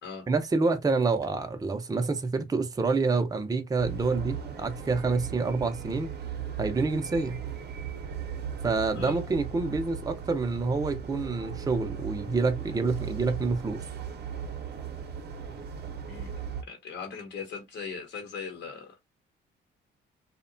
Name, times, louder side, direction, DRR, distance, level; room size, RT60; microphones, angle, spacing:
voice 1, 0.3-6.1 6.6-7.4 8.6-13.8, right 3 dB, 20° right, 0.5 m, -27 dB
sound 1, 3.8-16.6, right 7 dB, 55° right, 0.7 m, -37 dB
voice 2, 16.7-19.0, left 5 dB, 60° left, 0.9 m, -39 dB
2.8 x 2.2 x 2.5 m
cardioid pair, 90°, 20 cm